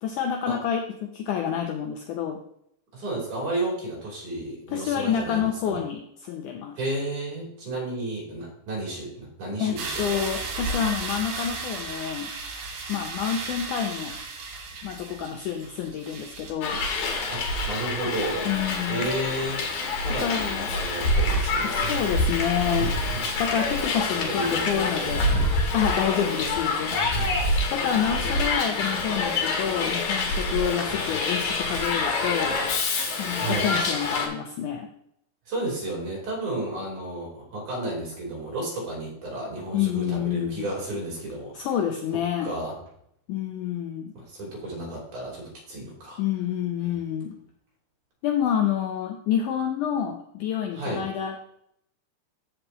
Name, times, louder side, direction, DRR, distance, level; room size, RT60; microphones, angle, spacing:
voice 1, 0.0-2.4 4.7-6.8 9.6-12.3 12.9-14.1 14.8-16.8 18.5-19.1 20.2-20.7 21.6-22.9 23.4-25.3 25.7-27.0 27.7-32.6 33.2-34.9 39.7-40.6 41.5-42.5 43.3-44.1 46.2-47.4 48.2-51.4, left 9 dB, 75° left, 3 dB, 1.9 m, -28 dB
voice 2, 2.9-5.9 6.8-10.2 17.3-18.5 18.9-19.6 20.0-22.0 22.8-23.2 24.1-25.4 26.9-27.3 30.9-31.1 33.4-33.7 35.5-41.7 42.4-42.8 44.1-46.2 46.8-46.9 50.7-51.0, right 2 dB, 55° right, -2 dB, 4.5 m, -32 dB
sound 1, 9.8-16.5, right 3 dB, 75° right, 3.5 m, -34 dB
Hiss, 16.6-34.3, left 2 dB, 60° left, 2.5 m, -26 dB
14.0 x 5.5 x 3.0 m, 0.74 s
omnidirectional pair, 4.3 m